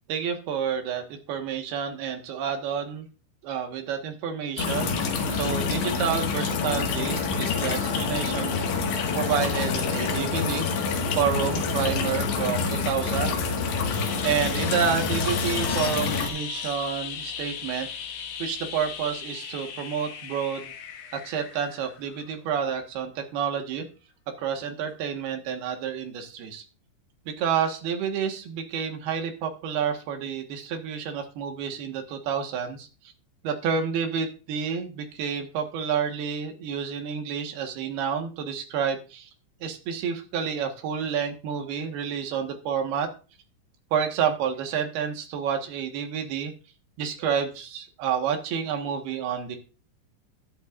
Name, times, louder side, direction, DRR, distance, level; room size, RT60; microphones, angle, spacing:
voice 1, 0.1-3.1 3.4-4.9 5.3-8.5 9.1-10.9 11.2-13.4 14.2-17.9 18.4-20.7 21.1-23.9 24.4-26.6 27.3-32.9 33.4-39.3 39.6-43.1 43.9-46.5 47.0-49.6, right 7 dB, 65° right, 4 dB, 3.0 m, -29 dB
sound 1, 4.6-16.3, left 5 dB, 65° left, 3.6 m, -27 dB
sound 2, 13.9-22.5 24.9-25.0, left 7 dB, 85° left, 1.7 m, -37 dB
14.0 x 11.5 x 2.5 m, 0.34 s
omnidirectional pair, 5.6 m